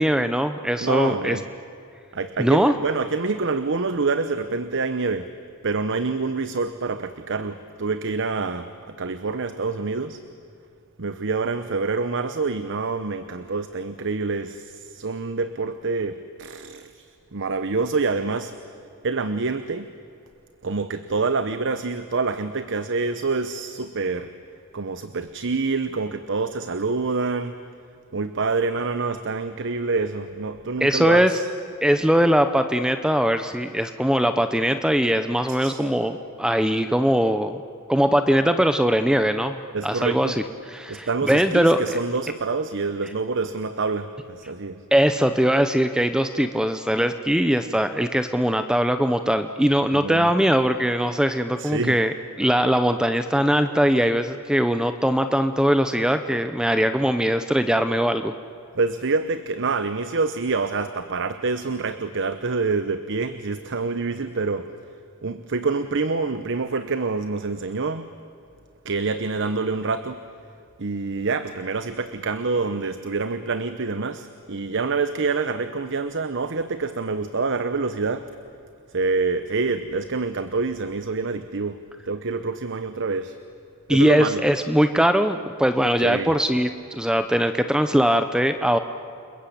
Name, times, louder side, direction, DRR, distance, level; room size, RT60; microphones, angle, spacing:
voice 1, 0.0-1.4 2.4-2.7 30.8-31.4 31.8-37.6 37.9-39.6 39.8-40.3 40.7-41.8 44.9-58.3 83.9-88.8, equal, 5° right, 9 dB, 0.7 m, -21 dB
voice 2, 0.8-1.4 2.1-5.3 5.6-10.2 11.0-17.1 17.3-18.5 19.0-19.9 20.6-24.3 24.7-27.6 28.1-31.5 35.5-35.8 39.7-40.4 40.9-44.8 49.9-50.3 51.6-52.0 58.7-64.7 65.2-68.1 68.8-70.2 70.8-78.3 78.9-83.3 83.9-84.4 86.0-86.3, right 4 dB, 60° right, 11 dB, 1.0 m, -26 dB
30.0 x 21.5 x 8.6 m, 2.5 s
head